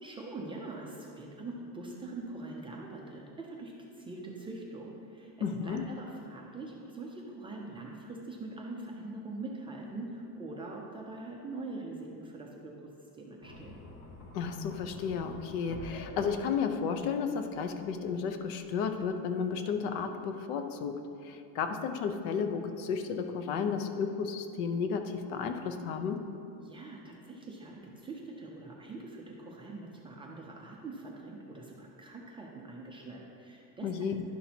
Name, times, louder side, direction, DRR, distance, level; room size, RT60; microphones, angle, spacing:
voice 1, 0.0-12.9 13.2-13.8 26.6-33.9, right 2 dB, 15° right, -2 dB, 0.3 m, -43 dB
voice 2, 5.4-5.8 14.3-26.2 33.8-34.2, left 6 dB, 75° left, 7 dB, 0.8 m, -33 dB
sound 1, 13.4-19.1, left 2 dB, 40° left, 0.9 m, -47 dB
11.0 x 5.9 x 2.8 m, 2.6 s
cardioid pair, 150°, 44 cm